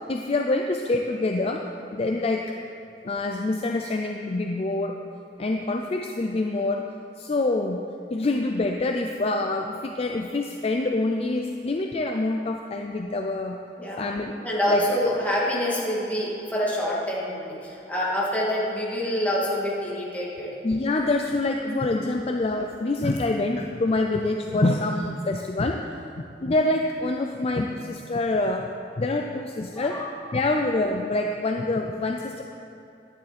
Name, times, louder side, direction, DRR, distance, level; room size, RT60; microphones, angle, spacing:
voice 1, 0.1-1.6 1.9-2.4 3.0-4.9 5.4-6.9 7.2-7.8 8.1-13.6 14.0-14.8 20.6-25.8 26.4-28.7 29.0-30.0 30.3-32.4, left 2 dB, 35° left, 3 dB, 0.4 m, -26 dB
voice 2, 14.4-20.5 29.8-30.0, equal, 10° left, -7 dB, 2.4 m, -26 dB
11.0 x 10.5 x 4.3 m, 2.6 s
head